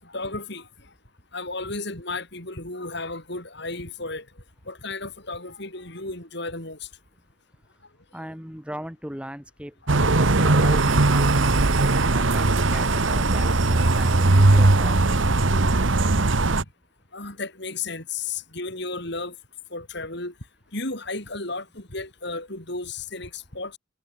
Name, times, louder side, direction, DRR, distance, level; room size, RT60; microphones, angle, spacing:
voice 1, 0.0-0.9 1.3-4.3 4.6-6.9 10.0-10.1 11.1-11.2 12.7-13.2 13.8-13.9 17.1-19.4 19.7-20.3 20.7-23.8, left 3 dB, 55° left, 6.2 m, -34 dB
voice 2, 8.1-15.3, equal, 5° right, 4.5 m, -38 dB
sound 1, 9.9-16.6, right 2 dB, 70° right, 1.3 m, -19 dB
head